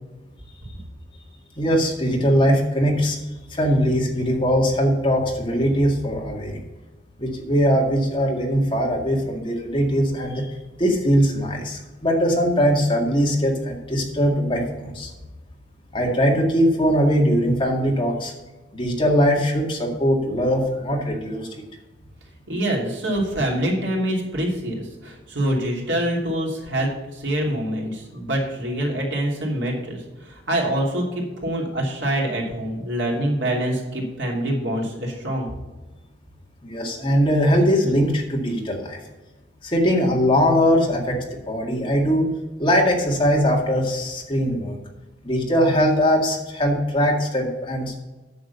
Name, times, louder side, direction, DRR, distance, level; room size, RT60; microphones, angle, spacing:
voice 1, 1.6-3.2 3.5-6.6 7.2-10.5 10.8-15.1 15.9-18.3 18.7-21.6 36.6-39.0 39.6-42.3 42.6-44.8 45.2-47.9, equal, 30° left, 0 dB, 2.1 m, -21 dB
voice 2, 22.5-30.0 30.3-35.5, right 1 dB, 80° right, -1 dB, 2.9 m, -25 dB
9.5 x 6.4 x 6.9 m, 1.1 s
head